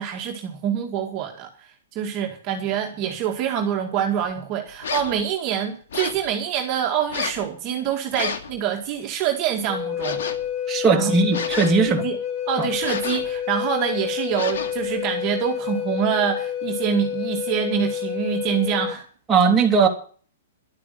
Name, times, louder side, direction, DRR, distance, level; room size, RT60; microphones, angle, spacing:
voice 1, 0.0-1.5 1.9-10.2 10.9-11.1 11.9-12.2 12.5-19.1, right 8 dB, 30° right, 2.2 m, -25 dB
sound 1, 4.8-5.2 5.9-6.3 7.1-7.5 8.1-8.5 10.0-10.5 11.3-11.9 12.8-13.4 14.3-14.9, left 6 dB, 70° left, 2.3 m, -30 dB
Wind instrument woodwind instrument, 9.7-19.0, left 9 dB, 30° left, 1.0 m, -29 dB
voice 2, 10.7-12.0 19.3-19.9, right 5 dB, 10° right, 2.6 m, -18 dB
11.5 x 8.6 x 9.5 m
hypercardioid pair, 160°, 0 cm